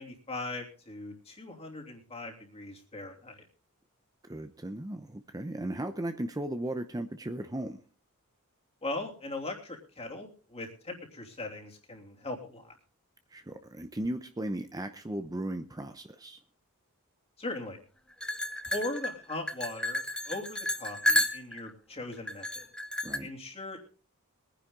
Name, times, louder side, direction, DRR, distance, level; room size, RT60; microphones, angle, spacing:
voice 1, 0.0-3.4 8.8-12.7 17.4-17.8 18.7-22.7 23.2-23.9, left 2 dB, 30° left, 1 dB, 2.9 m, -39 dB
voice 2, 4.3-7.8 13.3-16.4 23.0-23.3, right 1 dB, 15° right, 8 dB, 0.7 m, -36 dB
sound 1, 18.2-21.7 22.3-23.2, left 1 dB, 5° left, 1.1 m, -31 dB
21.5 x 10.0 x 3.8 m, 0.38 s
head